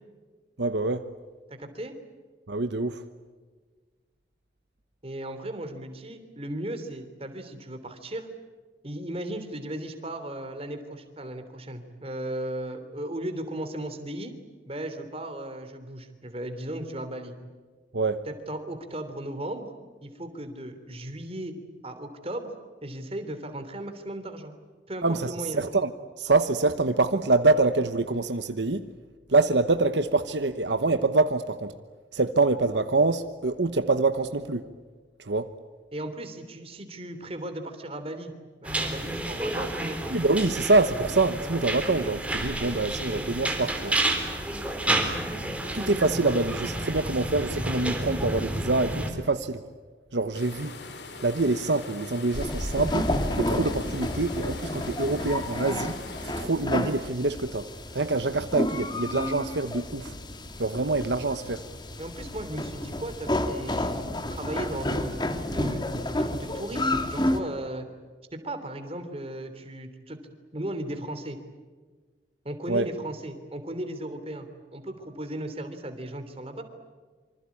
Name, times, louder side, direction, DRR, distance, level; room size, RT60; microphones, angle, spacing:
voice 1, 0.6-1.0 2.5-3.0 17.9-18.3 25.0-25.9 26.2-28.9 29.3-31.7 32.1-34.6 35.2-35.5 40.1-44.0 45.7-49.6 50.1-50.7 51.2-53.1 53.4-55.9 56.2-57.7 57.9-60.1 60.6-61.6 72.7-72.9, right 3 dB, 75° right, 1.1 m, -25 dB
voice 2, 1.5-1.9 5.0-8.3 8.8-14.3 14.7-17.3 18.3-19.7 20.0-21.5 21.8-22.5 22.8-24.5 24.9-25.6 35.9-38.3 38.6-40.0 62.0-67.9 68.4-70.2 70.5-71.4 72.4-74.5 74.7-76.6, right 1 dB, 35° right, 3.2 m, -36 dB
sound 1, 38.6-49.1, right 1 dB, 5° right, 3.7 m, -30 dB
sound 2, 50.3-56.5, left 3 dB, 70° left, 3.3 m, -42 dB
sound 3, 52.3-67.4, left 1 dB, 25° left, 2.0 m, -31 dB
26.5 x 25.5 x 8.6 m
head